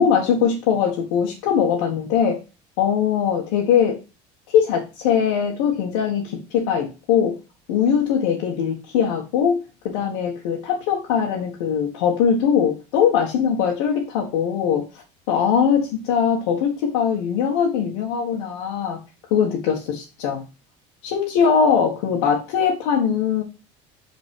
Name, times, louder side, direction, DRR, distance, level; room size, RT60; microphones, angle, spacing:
voice 1, 0.0-2.4 2.8-4.0 4.5-7.4 7.7-19.0 19.3-20.4 21.0-23.4, left 7 dB, 90° left, -3 dB, 1.6 m, -21 dB
5.6 x 4.2 x 5.3 m, 0.31 s
cardioid pair, 180°, 15 cm